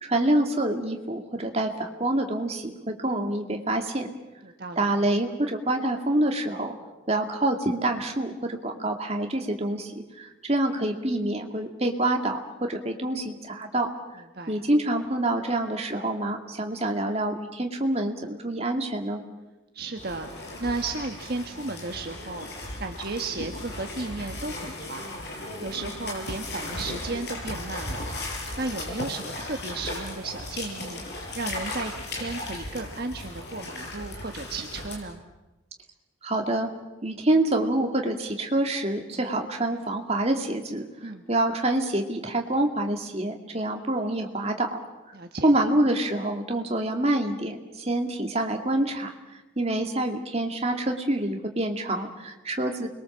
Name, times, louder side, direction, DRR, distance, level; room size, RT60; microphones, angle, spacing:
voice 1, 0.0-4.1 4.8-6.7 7.1-13.9 14.5-19.2 36.2-36.7 37.0-40.9 41.3-44.8 45.4-49.1 49.6-52.9, right 1 dB, 30° right, 3 dB, 2.4 m, -26 dB
voice 2, 4.4-4.9 14.3-14.6 19.7-22.4 22.8-25.1 25.6-28.0 28.6-35.2 41.0-41.2 45.1-45.5, right 3 dB, 50° right, 4 dB, 1.4 m, -34 dB
sound 1, 20.0-34.9, left 2 dB, 55° left, 6.9 m, -36 dB
29.0 x 22.5 x 7.4 m, 1.1 s
head